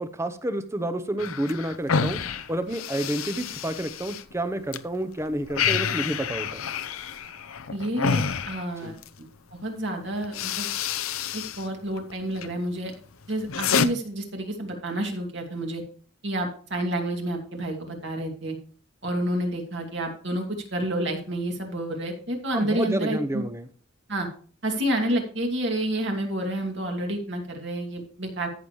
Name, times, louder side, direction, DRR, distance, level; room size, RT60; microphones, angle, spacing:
voice 1, 0.0-2.2 2.5-6.6 8.8-8.9 22.5-23.7, right 1 dB, 15° right, 10 dB, 0.7 m, -29 dB
sound 1, 1.2-4.8 5.1-9.2 9.8-10.0 10.2-11.7 12.0-12.5 12.9-13.9, left 6 dB, 85° left, 0.7 m, -29 dB
voice 2, 7.7-9.3 9.5-10.7 11.3-12.9 13.3-15.8 16.2-18.6 19.0-20.4 20.7-23.4 24.1-24.3 24.6-28.5, right 1 dB, 60° right, 2 dB, 2.4 m, -29 dB
14.0 x 6.8 x 3.2 m, 0.43 s
head